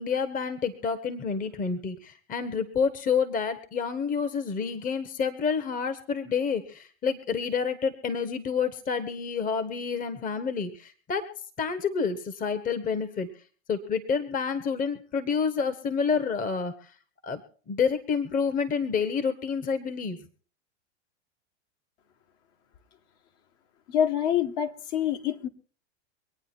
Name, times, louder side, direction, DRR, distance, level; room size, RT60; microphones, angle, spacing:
voice 1, 0.0-11.3 11.6-13.3 13.7-16.9 17.2-17.4 17.7-20.2, left 6 dB, 25° left, 1.3 m, -28 dB
voice 2, 23.9-25.5, left 9 dB, 50° left, 1.9 m, -26 dB
24.5 x 9.2 x 4.5 m
hypercardioid pair, 105°, 34 cm